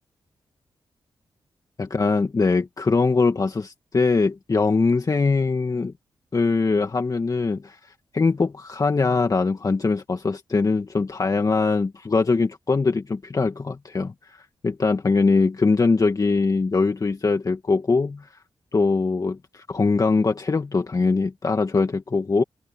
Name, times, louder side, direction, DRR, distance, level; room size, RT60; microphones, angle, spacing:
voice 1, 1.8-5.9 6.3-7.8 8.1-18.3 18.7-22.4, left 4 dB, 40° left, 1.9 m, -22 dB
cardioid pair, 60°, 9 cm